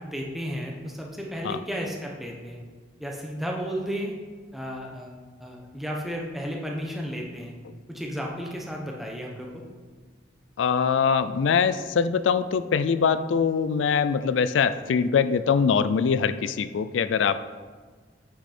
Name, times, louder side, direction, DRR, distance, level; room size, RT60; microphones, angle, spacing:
voice 1, 0.0-2.6 3.0-4.1 4.5-7.5 7.9-9.6, equal, ahead, -1 dB, 1.0 m, -33 dB
voice 2, 10.6-17.4, left 6 dB, 90° left, 13 dB, 0.4 m, -23 dB
8.5 x 5.9 x 4.3 m, 1.5 s
head